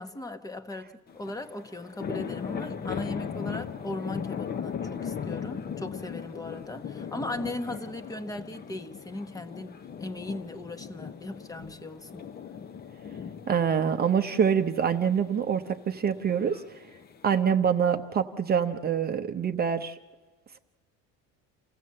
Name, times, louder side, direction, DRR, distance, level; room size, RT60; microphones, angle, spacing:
voice 1, 0.0-12.2, left 1 dB, 10° left, 10 dB, 1.1 m, -38 dB
sound 1, 1.1-17.4, left 7 dB, 30° left, 0.8 m, -38 dB
voice 2, 13.5-16.8 17.2-19.9, right 7 dB, 30° right, 6 dB, 0.8 m, -25 dB
28.5 x 16.0 x 7.6 m, 1.3 s
cardioid pair, 145°, 34 cm